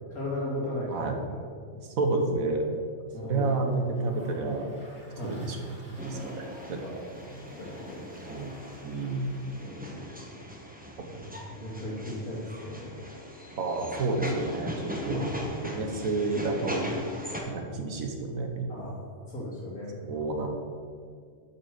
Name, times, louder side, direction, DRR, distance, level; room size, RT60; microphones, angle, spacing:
voice 1, 0.1-1.4 3.1-3.6 5.1-5.4 6.8-8.0 9.6-10.2 11.1-13.0 15.1-15.3 18.7-20.0, left 1 dB, 80° left, -6 dB, 3.0 m, -37 dB
voice 2, 1.7-2.7 3.2-4.7 5.2-5.6 5.9-6.8 8.2-8.5 8.8-9.3 13.6-15.3 15.6-16.8 17.5-18.8 20.0-20.5, right 3 dB, 70° right, 4 dB, 1.4 m, -30 dB
Toilet flush, 3.1-9.9, right 1 dB, 55° right, 2.9 m, -53 dB
sound 1, 6.0-17.4, equal, 5° right, 0.9 m, -39 dB
7.3 x 6.0 x 6.5 m, 2.1 s
omnidirectional pair, 1.5 m